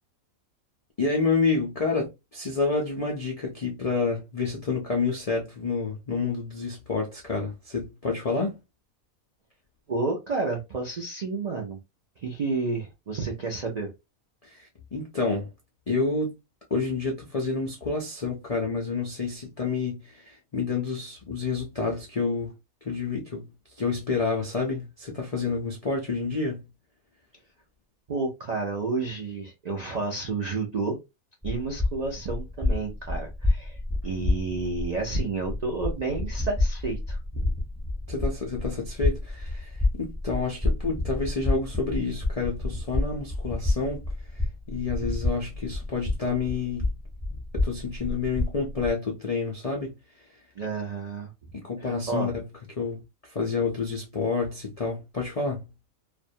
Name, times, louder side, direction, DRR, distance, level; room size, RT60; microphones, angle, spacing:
voice 1, 1.0-8.6 14.4-15.5 15.9-16.3 16.7-22.5 22.8-23.5 23.8-26.7 38.1-44.0 44.3-46.9 47.6-49.9 51.5-52.5 52.8-55.7, left 4 dB, 70° left, 0.3 m, -29 dB
voice 2, 9.9-11.8 12.2-13.9 28.1-31.0 31.4-37.5 50.6-51.3 51.8-52.3, right 4 dB, 75° right, 0.3 m, -30 dB
sound 1, 31.4-48.9, left 2 dB, 5° right, 0.5 m, -29 dB
2.5 x 2.1 x 2.6 m
omnidirectional pair, 1.5 m